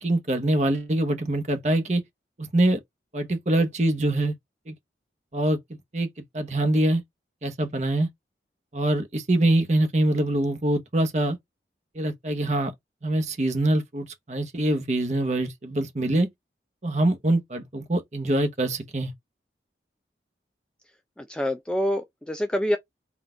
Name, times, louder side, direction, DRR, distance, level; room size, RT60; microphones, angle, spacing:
voice 1, 0.0-2.0 2.4-2.8 3.1-4.3 4.7-4.8 5.3-5.6 5.9-6.1 6.3-7.0 7.4-8.1 8.7-11.4 11.9-12.7 13.0-16.3 16.8-19.1, right 1 dB, 40° right, 0.8 m, -24 dB
voice 2, 21.2-22.8, equal, 5° left, 0.3 m, -26 dB
3.8 x 2.3 x 3.7 m
head